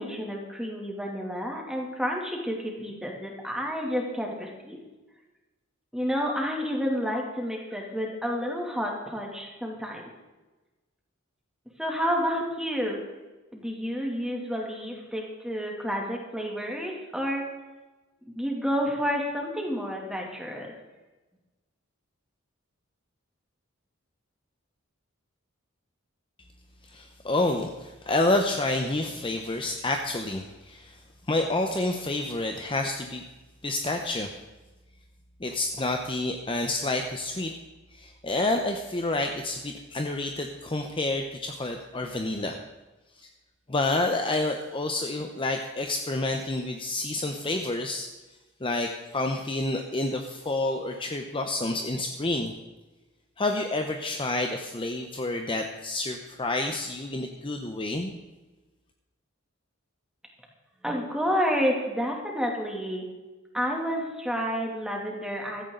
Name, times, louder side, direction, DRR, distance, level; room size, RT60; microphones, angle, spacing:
voice 1, 0.0-4.8 5.9-10.1 11.8-13.0 13.5-17.4 18.2-20.7 60.8-63.0 63.5-65.6, equal, 5° right, -1 dB, 2.7 m, -30 dB
voice 2, 26.9-31.0 31.3-33.2 33.6-34.3 35.4-37.5 37.9-42.6 43.2-43.3 43.7-48.1 48.6-52.5 53.4-58.1, left 2 dB, 25° left, 4 dB, 0.9 m, -29 dB
16.0 x 14.0 x 3.9 m, 1.1 s
head